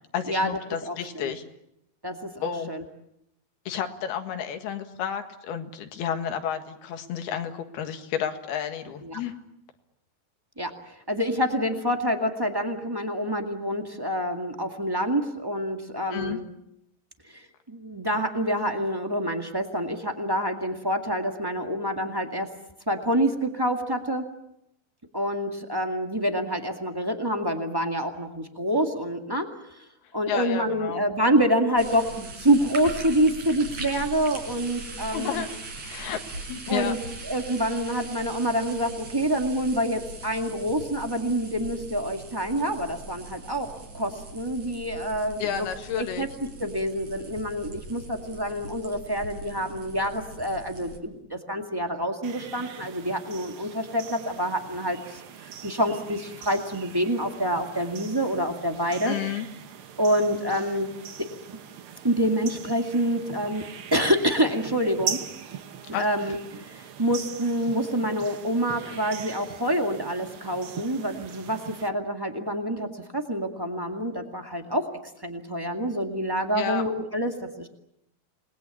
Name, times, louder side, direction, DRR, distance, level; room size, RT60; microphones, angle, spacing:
voice 1, 0.1-1.4 2.4-2.7 3.7-9.3 16.1-16.4 30.3-31.1 35.1-35.5 35.8-36.2 36.5-37.0 45.4-46.3 59.1-59.5 65.9-66.1 76.5-76.8, left 8 dB, 85° left, 6 dB, 3.8 m, -31 dB
voice 2, 0.8-1.3 2.0-2.8 9.0-9.2 10.6-16.4 17.3-22.5 22.9-24.2 25.1-29.4 29.8-29.9 30.1-35.4 36.7-37.0 37.2-45.7 45.9-46.3 46.6-55.2 55.6-59.1 60.0-60.9 62.0-63.6 63.9-65.2 66.0-74.8 75.2-77.7, equal, 15° right, 4 dB, 0.8 m, -27 dB
sound 1, 31.8-51.0, right 3 dB, 50° right, 5.4 m, -41 dB
sound 2, 52.2-71.9, right 8 dB, 80° right, 1.2 m, -41 dB
28.5 x 21.0 x 8.5 m, 0.81 s
omnidirectional pair, 4.4 m